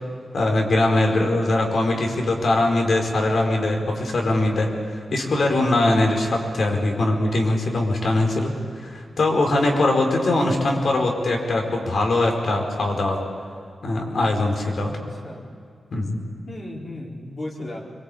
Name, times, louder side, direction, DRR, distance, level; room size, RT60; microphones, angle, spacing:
voice 1, 0.3-4.7 5.1-8.5 8.8-13.2 13.8-15.0 15.9-16.2, left 2 dB, 65° left, 1 dB, 4.9 m, -21 dB
voice 2, 14.9-15.5 16.5-17.9, left 1 dB, 45° left, -3 dB, 4.8 m, -35 dB
25.5 x 23.5 x 8.7 m, 2.3 s
wide cardioid pair, 95°, 0 cm